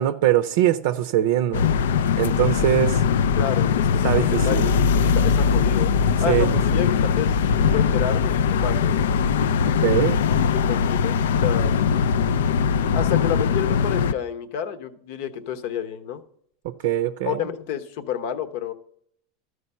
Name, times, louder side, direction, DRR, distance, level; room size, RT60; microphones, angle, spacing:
voice 1, 0.0-1.7 2.2-3.0 4.0-4.7 6.3-6.5 9.8-10.2 16.6-17.4, right 12 dB, 75° right, 0.5 m, -22 dB
sound 1, 1.5-14.1, left 6 dB, 90° left, 0.3 m, -21 dB
voice 2, 3.4-5.9 6.2-7.3 7.6-8.9 10.4-11.8 12.9-16.2 17.2-18.7, left 8 dB, 70° left, 0.9 m, -30 dB
13.0 x 4.9 x 5.5 m
supercardioid pair, 110°, 0 cm